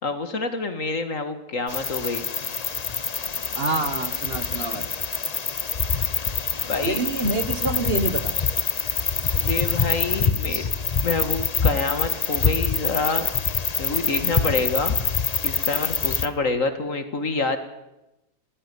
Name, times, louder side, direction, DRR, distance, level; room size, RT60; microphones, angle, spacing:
voice 1, 0.0-2.2 6.7-7.0 9.4-10.6 11.0-13.3 13.8-15.0 15.4-17.6, left 3 dB, 55° left, 9 dB, 2.1 m, -27 dB
sound 1, 1.7-16.3, left 5 dB, 35° left, 0.7 m, -25 dB
voice 2, 3.5-4.9 6.8-8.3, right 2 dB, 40° right, 9 dB, 1.6 m, -26 dB
19.5 x 16.0 x 9.7 m, 0.94 s
omnidirectional pair, 1.7 m